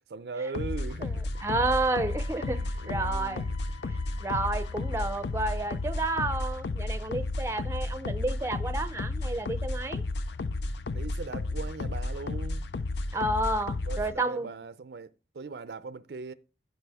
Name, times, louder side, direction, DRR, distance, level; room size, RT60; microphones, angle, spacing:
voice 1, 0.0-1.3 2.5-3.5 4.9-5.1 10.9-12.7 13.9-16.3, right 4 dB, 65° right, 0.5 m, -40 dB
sound 1, 0.5-14.1, left 2 dB, 75° left, 0.5 m, -33 dB
Wind instrument woodwind instrument, 1.3-6.1, left 5 dB, 30° left, 0.8 m, -52 dB
voice 2, 1.4-3.4 4.2-10.0 13.1-14.5, right 2 dB, 15° right, 0.5 m, -30 dB
13.5 x 4.5 x 3.5 m
head